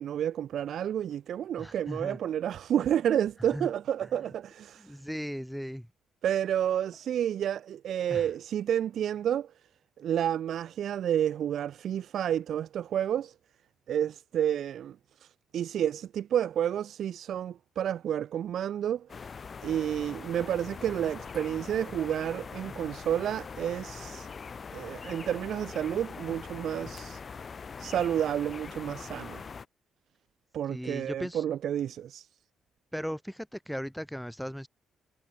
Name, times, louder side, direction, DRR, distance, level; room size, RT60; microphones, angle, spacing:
voice 1, 0.0-4.9 6.2-9.5 10.0-13.3 13.9-15.0 15.5-19.1 19.6-24.3 24.7-27.2 27.8-29.4 30.5-32.3, right 10 dB, 65° right, 1.2 m, -30 dB
voice 2, 1.6-2.2 3.5-3.7 4.8-5.9 8.1-8.3 30.7-31.4 32.9-34.7, equal, ahead, 3.1 m, -37 dB
sound 1, 19.1-29.7, left 5 dB, 40° left, 1.2 m, -42 dB
cardioid pair, 90°, 0 cm